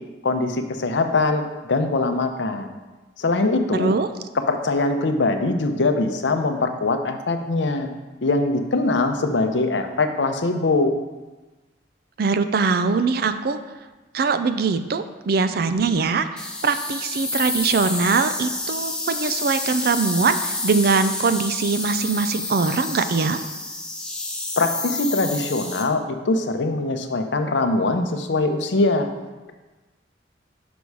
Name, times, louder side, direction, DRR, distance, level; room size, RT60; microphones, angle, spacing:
voice 1, 0.2-1.4 1.7-2.8 3.2-3.9 4.5-7.9 8.2-10.9 24.6-29.1, left 2 dB, 85° left, 7 dB, 0.7 m, -22 dB
voice 2, 3.7-4.1 12.2-13.6 14.1-23.4, right 4 dB, 60° right, 10 dB, 0.4 m, -22 dB
sound 1, 16.4-25.8, left 2 dB, 5° left, 0.6 m, -29 dB
6.1 x 5.4 x 4.7 m, 1.2 s
head